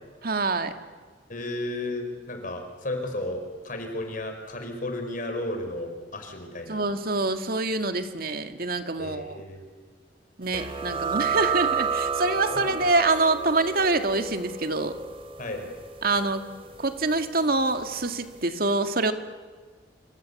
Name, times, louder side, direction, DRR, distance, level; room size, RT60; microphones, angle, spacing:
voice 1, 0.2-0.7 6.7-9.4 10.4-15.0 16.0-16.4 16.8-19.1, right 3 dB, 55° right, 7 dB, 2.0 m, -25 dB
voice 2, 1.3-6.9 9.0-9.6 12.5-12.7 15.4-15.7, left 1 dB, 45° left, 5 dB, 5.1 m, -33 dB
sound 1, 10.5-17.8, right 6 dB, 30° right, 2.6 m, -31 dB
27.0 x 25.5 x 8.4 m, 1.5 s
head